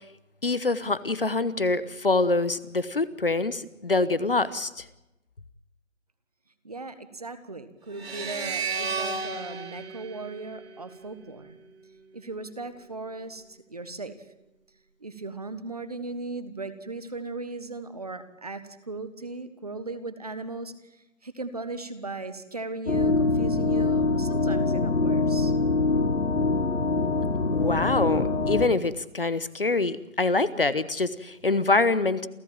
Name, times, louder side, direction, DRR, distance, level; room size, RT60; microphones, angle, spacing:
voice 1, 0.4-4.8 27.5-32.3, left 3 dB, 45° left, 16 dB, 1.1 m, -25 dB
voice 2, 6.6-11.6 12.1-14.2 15.0-25.5, right 3 dB, 30° right, 11 dB, 1.5 m, -37 dB
sound 1, 8.0-11.3, right 4 dB, 45° right, 3.4 m, -33 dB
sound 2, 22.9-28.7, left 3 dB, 70° left, 2.8 m, -24 dB
28.5 x 14.5 x 8.9 m, 0.92 s
figure-of-eight pair, 175°, 40 cm